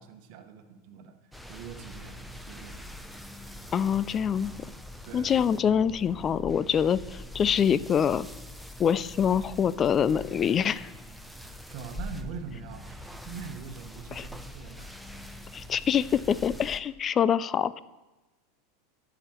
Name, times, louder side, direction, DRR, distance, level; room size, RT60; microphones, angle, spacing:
voice 1, 0.0-2.9 5.1-5.4 11.4-15.1, right 6 dB, 60° right, 7 dB, 1.1 m, -43 dB
sound 1, 1.3-16.8, left 1 dB, ahead, 0.8 m, -43 dB
voice 2, 3.7-4.5 5.1-8.3 8.8-10.9 14.1-14.3 15.5-17.8, left 8 dB, 30° left, 18 dB, 0.3 m, -25 dB
13.0 x 5.0 x 4.4 m, 1.1 s
hypercardioid pair, 95°, 0 cm